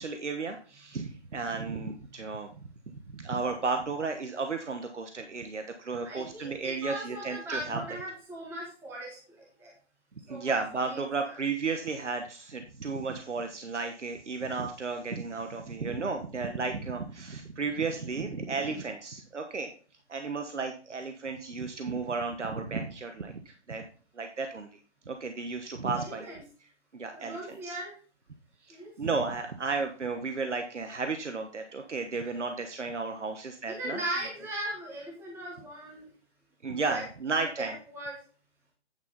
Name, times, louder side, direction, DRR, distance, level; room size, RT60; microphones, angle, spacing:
voice 1, 0.0-2.5 3.1-7.8 10.3-19.7 20.1-23.8 24.1-24.8 25.1-26.3 26.9-27.8 28.6-34.0 36.6-37.7, right 4 dB, 80° right, 6 dB, 1.2 m, -33 dB
voice 2, 6.0-9.2 9.6-9.7 10.3-10.6 10.8-11.3 26.0-26.4 27.1-27.9 28.7-28.9 33.7-36.1 36.9-37.0 37.4-38.1, right 1 dB, 5° right, -3 dB, 1.4 m, -38 dB
9.5 x 5.7 x 4.1 m, 0.40 s
figure-of-eight pair, 145°, 35 cm